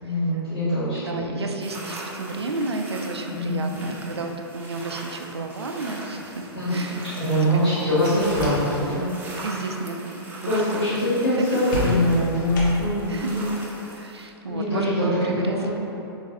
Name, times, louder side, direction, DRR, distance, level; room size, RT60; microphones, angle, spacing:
voice 1, 0.0-1.4 3.3-3.9 6.5-7.0 7.2-9.0 10.5-13.6 14.5-15.7, equal, 85° left, -16 dB, 1.4 m, -23 dB
voice 2, 1.0-7.8 8.1-8.4 9.4-11.6 13.1-13.3 14.0-15.7, right 3 dB, 80° right, 4 dB, 0.4 m, -32 dB
sound 1, 1.6-14.3, right 1 dB, 15° right, 0.5 m, -39 dB
sound 2, 8.1-9.0 9.3-9.6 11.7-13.1, left 2 dB, 50° left, 0.7 m, -31 dB
3.7 x 3.2 x 2.7 m, 2.9 s
figure-of-eight pair, 105°, 14 cm